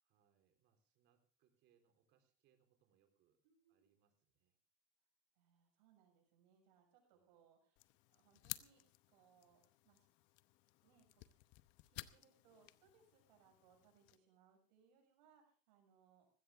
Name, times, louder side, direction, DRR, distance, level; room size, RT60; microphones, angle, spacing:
voice 1, 0.0-3.4 3.7-4.6 7.0-7.4, right 9 dB, 55° right, 8 dB, 3.8 m, -79 dB
voice 2, 3.4-3.9 5.4-10.1 10.8-11.3 11.8-16.3, right 7 dB, 90° right, 3 dB, 6.9 m, -72 dB
sound 1, 7.8-14.2, left 19 dB, 60° left, 0.9 m, -55 dB
20.0 x 16.0 x 3.5 m, 0.38 s
supercardioid pair, 130°, 21 cm